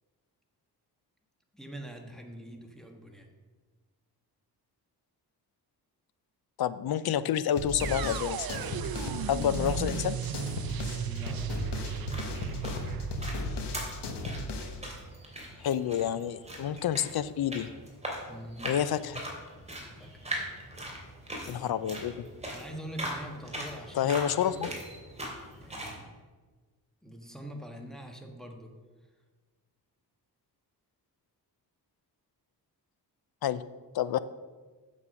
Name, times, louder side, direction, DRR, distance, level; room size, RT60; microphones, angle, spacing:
voice 1, 1.5-3.3 11.0-12.1 18.3-18.7 19.9-20.2 22.5-24.2 25.6-26.2 27.0-28.7, right 1 dB, ahead, 3 dB, 1.5 m, -44 dB
voice 2, 6.6-8.5 9.3-10.2 15.6-17.7 18.6-19.2 21.5-22.3 24.0-24.7 33.4-33.6 33.9-34.2, left 10 dB, 65° left, 15 dB, 0.6 m, -29 dB
sound 1, 7.6-14.9, left 2 dB, 90° left, 1.3 m, -36 dB
sound 2, 7.8-15.7, right 9 dB, 60° right, 0.6 m, -37 dB
sound 3, 11.8-26.0, right 1 dB, 15° right, 2.8 m, -41 dB
8.4 x 7.4 x 6.4 m, 1.4 s
wide cardioid pair, 105°, 40 cm